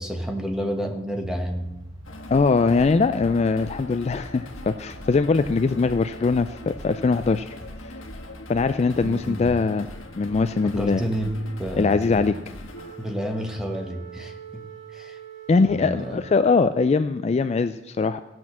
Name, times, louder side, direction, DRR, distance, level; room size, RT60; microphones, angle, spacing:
voice 1, 0.0-1.7 9.0-9.6 10.6-12.4 13.0-14.6 14.9-15.2 15.5-16.2, equal, 5° right, 3 dB, 1.2 m, -30 dB
sound 1, 1.2-9.4, right 1 dB, 20° right, 4.2 m, -46 dB
sound 2, 2.0-14.1, left 1 dB, 85° left, 1.3 m, -41 dB
voice 2, 2.3-7.6 7.9-8.0 8.5-9.9 10.2-11.0 11.8-12.4 15.5-18.2, left 4 dB, 35° left, 11 dB, 0.3 m, -21 dB
Wind instrument woodwind instrument, 12.7-17.1, right 10 dB, 75° right, 2.1 m, -44 dB
16.0 x 6.1 x 7.3 m, 1.0 s
head